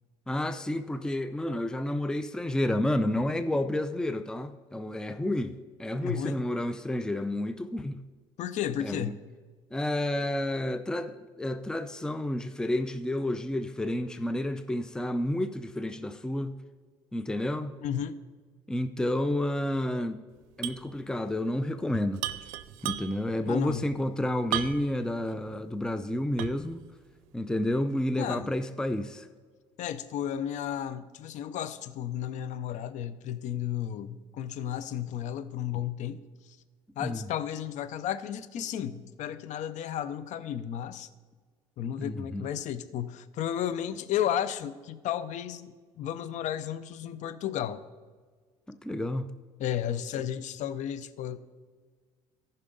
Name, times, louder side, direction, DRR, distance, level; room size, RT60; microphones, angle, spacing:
voice 1, 0.3-8.0 8.8-9.1 9.7-16.6 17.1-17.8 18.7-20.2 20.6-22.3 22.8-26.8 27.3-29.3 37.0-37.3 42.0-42.4 48.7-49.3, left 1 dB, 5° left, 0.5 m, -30 dB
voice 2, 6.0-6.4 8.4-9.2 17.8-18.2 23.4-23.9 28.2-28.5 29.8-36.2 36.5-36.6 37.0-41.1 41.8-47.8 49.6-51.4, left 10 dB, 60° left, 0.6 m, -33 dB
sound 1, 20.6-20.9 21.2-21.3 22.2-23.3 24.5-25.0 25.5-25.6 26.4-26.8, right 13 dB, 75° right, 0.5 m, -34 dB
14.0 x 5.6 x 3.9 m
supercardioid pair, 75°, 14 cm